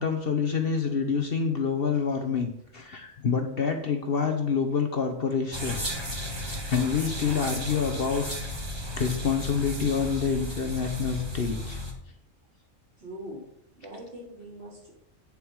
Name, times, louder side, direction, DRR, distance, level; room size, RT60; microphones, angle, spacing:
voice 1, 0.0-5.8 6.4-8.3 8.9-11.8, left 6 dB, 50° left, 5 dB, 1.1 m, -27 dB
sound 1, 5.5-11.9, left 1 dB, 20° right, 1.3 m, -34 dB
voice 2, 13.0-13.4 13.8-14.9, equal, 50° right, -4 dB, 3.5 m, -42 dB
8.8 x 7.2 x 4.7 m, 0.74 s
omnidirectional pair, 1.3 m